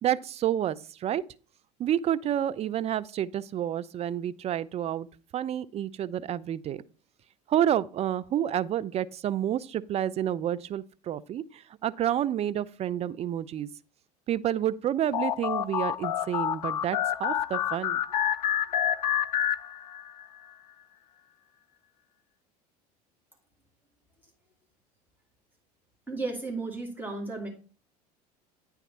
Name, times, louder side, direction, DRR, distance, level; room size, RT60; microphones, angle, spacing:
voice 1, 0.0-1.2 1.8-5.1 5.3-6.8 7.5-13.7 14.3-18.0, right 11 dB, 30° right, 0.4 m, -29 dB
sound 1, 15.1-20.2, left 10 dB, 80° left, 0.4 m, -28 dB
voice 2, 26.1-27.5, right 3 dB, 10° right, 2.2 m, -34 dB
9.1 x 3.5 x 5.5 m
hypercardioid pair, 75°, 20 cm